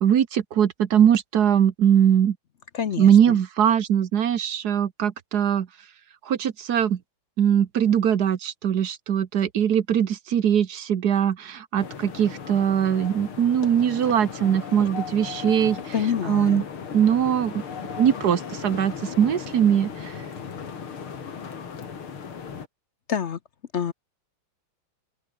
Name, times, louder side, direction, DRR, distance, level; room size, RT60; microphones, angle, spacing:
voice 1, 0.0-2.3 3.0-5.7 6.3-7.0 7.4-15.8 16.3-16.6 16.9-17.5 18.0-19.9, right 9 dB, 55° right, 1.5 m, -21 dB
voice 2, 2.7-3.4 15.9-16.6 23.1-23.4 23.7-23.9, left 8 dB, 60° left, 0.7 m, -27 dB
sound 1, 11.8-22.7, left 6 dB, 75° left, 3.2 m, -36 dB
open air
omnidirectional pair, 2.3 m